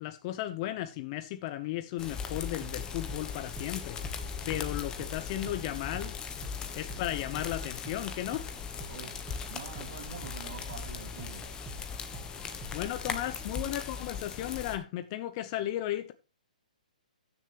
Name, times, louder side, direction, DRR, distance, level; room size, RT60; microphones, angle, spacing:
voice 1, 0.0-4.0 4.5-6.2 6.8-8.5 12.7-16.1, left 13 dB, 35° left, 0.9 m, -35 dB
sound 1, 2.0-14.8, left 6 dB, 15° left, 1.3 m, -39 dB
sound 2, 2.2-13.8, right 5 dB, 15° right, 1.5 m, -50 dB
voice 2, 8.9-11.6, right 8 dB, 50° right, 2.9 m, -46 dB
15.0 x 7.0 x 3.2 m
hypercardioid pair, 140°, 5 cm